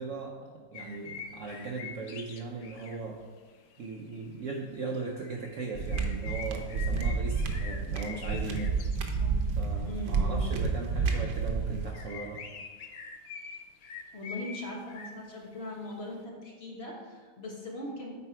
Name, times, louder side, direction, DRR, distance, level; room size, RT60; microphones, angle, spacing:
voice 1, 0.0-3.2 3.8-8.8 9.6-12.5, right 3 dB, 60° right, 1 dB, 0.8 m, -38 dB
sound 1, 0.7-3.0 3.4-3.8 4.1-4.6 5.1-10.2 11.2-11.6 11.9-15.1 15.6-15.9, left 5 dB, 70° left, 0.6 m, -45 dB
sound 2, 5.8-11.9, right 4 dB, 85° right, 1.4 m, -30 dB
voice 2, 9.9-10.6 14.1-18.1, left 2 dB, 40° left, -2 dB, 1.3 m, -40 dB
8.2 x 4.7 x 4.4 m, 1.5 s
omnidirectional pair, 1.8 m